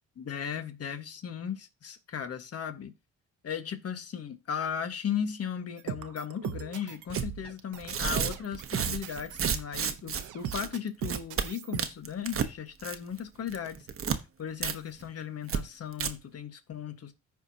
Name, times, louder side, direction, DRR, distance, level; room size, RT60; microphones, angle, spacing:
voice 1, 0.2-2.9 3.4-13.9 14.4-17.1, left 8 dB, 55° left, 1.5 m, -36 dB
sound 1, 5.8-9.9 10.2-11.8, right 10 dB, 80° right, 0.9 m, -38 dB
Tearing, 7.1-7.3 7.8-10.2 10.5-10.7 11.0-11.5 11.8-12.5 12.8-13.2 13.5-14.2 14.6-14.7 15.0-15.1 15.5-15.6 15.9-16.1, right 7 dB, 45° right, 1.0 m, -31 dB
14.5 x 4.8 x 2.8 m
cardioid pair, 90°, 30 cm